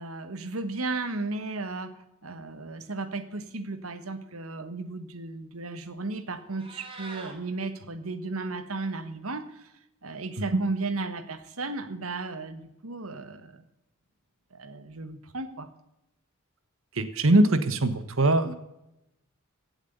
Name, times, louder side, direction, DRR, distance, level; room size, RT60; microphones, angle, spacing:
voice 1, 0.0-9.7 10.0-13.6 14.5-15.7, right 3 dB, 85° right, 11 dB, 1.6 m, -35 dB
Meow, 6.4-7.4, right 3 dB, 25° right, 3.0 m, -44 dB
voice 2, 17.0-18.5, right 2 dB, 70° right, 11 dB, 1.4 m, -22 dB
17.0 x 8.1 x 6.9 m, 0.87 s
head